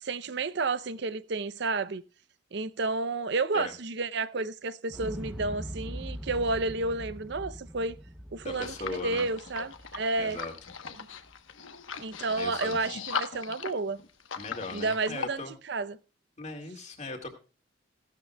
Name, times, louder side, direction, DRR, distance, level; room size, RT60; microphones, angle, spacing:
voice 1, 0.0-2.0 2.5-8.0 8.3-10.4 12.0-14.0 14.7-16.0, right 3 dB, 60° right, 0.6 m, -31 dB
Explosion, 4.9-10.9 11.3-11.4, equal, 5° right, 0.7 m, -42 dB
voice 2, 8.4-9.3 10.2-10.5 12.3-12.9 14.4-15.6 16.4-17.3, left 2 dB, 35° left, 2.0 m, -38 dB
sound 1, 8.5-15.3, left 6 dB, 85° left, 1.0 m, -39 dB
16.0 x 12.0 x 2.2 m
head